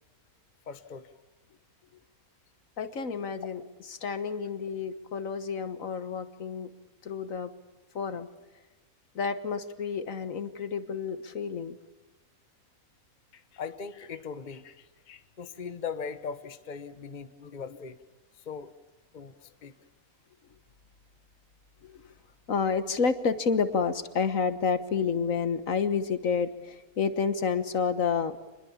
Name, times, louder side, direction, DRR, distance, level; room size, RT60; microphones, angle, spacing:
voice 1, 0.7-1.1 13.3-18.0 18.4-18.7 19.1-19.7, left 6 dB, 35° left, 10 dB, 1.2 m, -40 dB
voice 2, 2.8-3.6 4.0-6.7 7.0-7.5 7.9-8.3 9.1-11.8 21.8-22.0 22.5-28.4, left 5 dB, 65° left, 11 dB, 1.6 m, -29 dB
27.5 x 21.5 x 7.2 m, 1.1 s
omnidirectional pair, 1.5 m